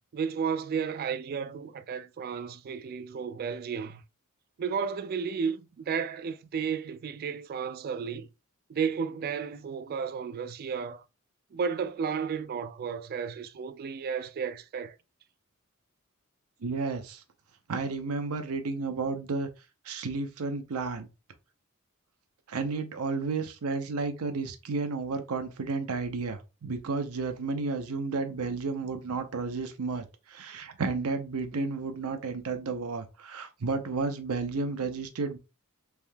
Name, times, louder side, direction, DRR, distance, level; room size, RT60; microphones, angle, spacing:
voice 1, 0.1-4.0 4.6-8.3 8.7-11.0 11.5-15.0, right 6 dB, 45° right, 0.3 m, -33 dB
voice 2, 16.6-17.2 17.7-19.5 19.9-21.1 22.5-35.4, right 4 dB, 85° right, 0.6 m, -32 dB
3.4 x 2.7 x 2.2 m
head